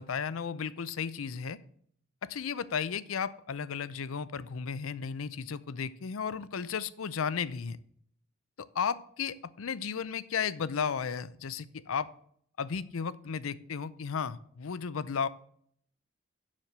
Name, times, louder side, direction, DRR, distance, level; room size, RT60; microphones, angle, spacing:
voice 1, 0.0-1.6 2.2-7.8 8.6-12.1 12.6-15.3, left 6 dB, 85° left, 16 dB, 0.5 m, -34 dB
7.3 x 6.5 x 6.6 m, 0.63 s
head